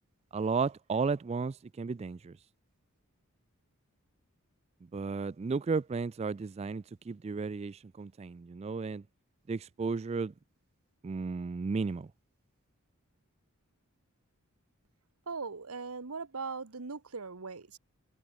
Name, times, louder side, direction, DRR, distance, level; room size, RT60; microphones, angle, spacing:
voice 1, 0.3-2.4 4.9-9.0 9.5-10.3 11.0-12.1, right 4 dB, 30° right, 0.3 m, -33 dB
voice 2, 15.3-17.8, right 4 dB, 85° right, 1.3 m, -39 dB
head